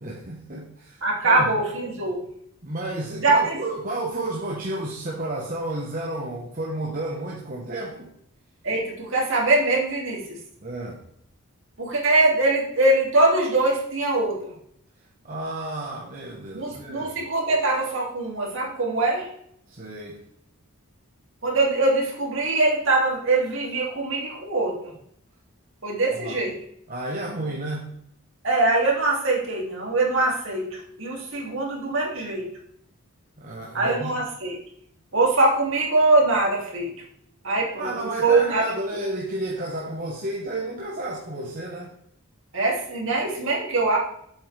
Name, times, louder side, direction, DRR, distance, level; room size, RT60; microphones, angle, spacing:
voice 1, 0.0-1.5 2.6-8.1 10.6-11.0 15.2-17.1 19.7-20.2 26.1-26.4 26.9-27.9 33.4-34.1 37.8-41.9, right 1 dB, 40° right, -3 dB, 1.3 m, -31 dB
voice 2, 1.0-2.2 3.2-3.6 8.6-10.4 11.8-14.5 16.5-19.3 21.4-24.9 25.8-26.5 28.4-32.5 33.7-34.6 35.1-36.9 37.4-38.6 42.5-44.0, right 2 dB, 60° right, -2 dB, 2.9 m, -22 dB
8.7 x 7.4 x 3.5 m, 0.68 s
head